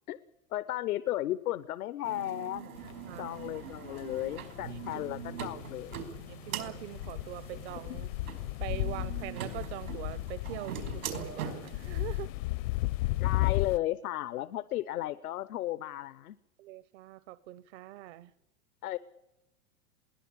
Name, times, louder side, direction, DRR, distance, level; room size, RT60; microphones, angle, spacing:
voice 1, 0.5-2.8 3.2-6.3 13.2-16.4 18.8-19.0, left 15 dB, 90° left, 15 dB, 0.9 m, -34 dB
sound 1, 2.0-11.9, right 7 dB, 90° right, 5.0 m, -42 dB
voice 2, 2.7-3.3 4.7-5.1 6.3-8.1 8.6-12.3 16.6-18.3, right 16 dB, 50° right, 16 dB, 0.8 m, -43 dB
sound 2, 2.8-13.8, left 19 dB, 60° left, 0.7 m, -35 dB
21.5 x 17.5 x 8.6 m, 0.95 s
supercardioid pair, 140°, 43 cm